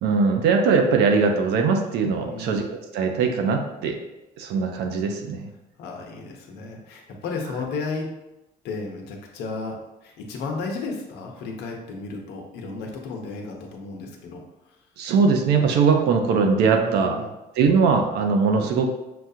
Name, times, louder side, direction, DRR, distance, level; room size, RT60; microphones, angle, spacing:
voice 1, 0.0-2.7 2.9-4.0 4.4-5.5 15.0-17.2 17.6-18.9, right 5 dB, 85° right, 4 dB, 0.7 m, -20 dB
voice 2, 2.2-2.7 5.8-8.1 8.6-14.4 16.8-17.3, left 3 dB, 75° left, 1 dB, 0.9 m, -33 dB
6.0 x 2.4 x 2.7 m, 0.98 s
cardioid pair, 110°, 17 cm